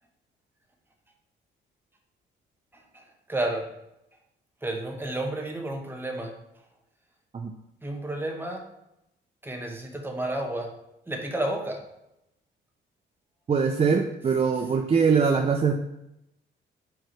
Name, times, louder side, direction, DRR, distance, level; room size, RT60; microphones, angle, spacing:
voice 1, 3.3-3.6 4.6-6.3 7.8-8.6 9.4-10.7 11.1-11.8, right 1 dB, 10° right, 2 dB, 1.2 m, -31 dB
voice 2, 13.5-15.8, right 5 dB, 30° right, 3 dB, 0.5 m, -22 dB
4.7 x 4.6 x 4.6 m, 0.85 s
cardioid pair, 90°, 20 cm